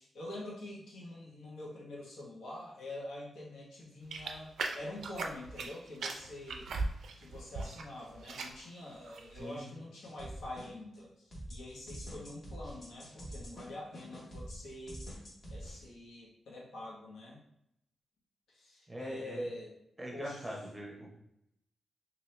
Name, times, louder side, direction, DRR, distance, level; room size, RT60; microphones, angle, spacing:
voice 1, 0.0-6.7 7.2-15.0 15.5-17.4 18.5-19.7 20.1-20.4, left 1 dB, 90° left, -4 dB, 1.1 m, -45 dB
sound 1, 4.1-5.7 6.0-7.9 8.1-8.6 9.1-9.4, right 3 dB, 80° right, 0.3 m, -38 dB
voice 2, 9.3-9.7 18.9-19.5 20.0-21.2, right 1 dB, 10° right, -1 dB, 0.8 m, -42 dB
sound 2, 10.0-11.0 11.3-15.8, equal, 30° left, 1.0 m, -46 dB
2.8 x 2.7 x 3.2 m, 0.81 s
wide cardioid pair, 135°, 0 cm